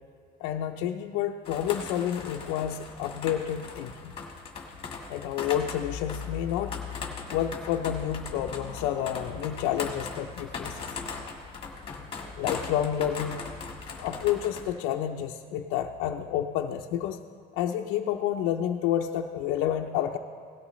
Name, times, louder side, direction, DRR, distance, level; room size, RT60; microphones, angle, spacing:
voice 1, 0.4-4.1 5.1-6.8 7.3-11.2 12.4-13.4 14.0-17.2 17.5-20.2, left 10 dB, 85° left, 3 dB, 0.6 m, -29 dB
sound 1, 1.4-14.7, left 5 dB, 25° left, 1.5 m, -39 dB
17.0 x 12.5 x 3.1 m, 2.2 s
cardioid pair, 150°, 20 cm